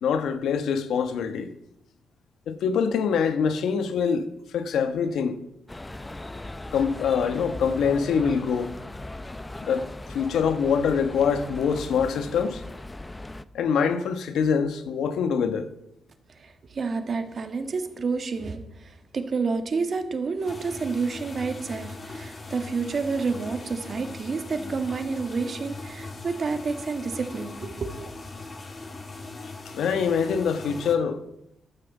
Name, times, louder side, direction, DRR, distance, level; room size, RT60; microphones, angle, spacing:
voice 1, 0.0-1.5 2.5-4.3 4.5-5.4 6.7-8.7 9.6-12.6 13.5-15.7 29.4-31.2, left 6 dB, 85° left, 1.4 m, -24 dB
sound 1, 5.7-13.4, left 2 dB, 15° left, 0.6 m, -38 dB
voice 2, 16.4-27.9, right 4 dB, 40° right, 2.0 m, -29 dB
sound 2, 20.5-31.0, left 3 dB, 30° left, 2.1 m, -40 dB
13.0 x 13.0 x 7.2 m
wide cardioid pair, 140°, 0 cm